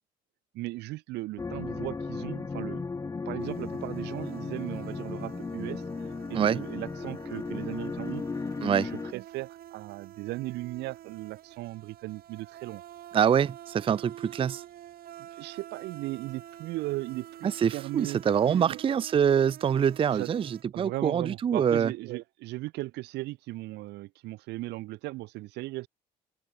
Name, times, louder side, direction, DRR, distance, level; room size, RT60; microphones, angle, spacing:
voice 1, 0.5-2.8 3.2-5.8 6.3-8.2 9.1-12.8 15.3-18.8 20.1-20.3 20.7-25.9, right 19 dB, 85° right, 1.3 m, -37 dB
sound 1, 1.4-9.1, left 4 dB, 20° left, 0.8 m, -35 dB
sound 2, 3.4-20.6, right 12 dB, 60° right, 2.1 m, -48 dB
voice 2, 13.1-14.6 17.4-21.9, right 8 dB, 30° right, 0.5 m, -25 dB
open air
cardioid pair, 110°, 17 cm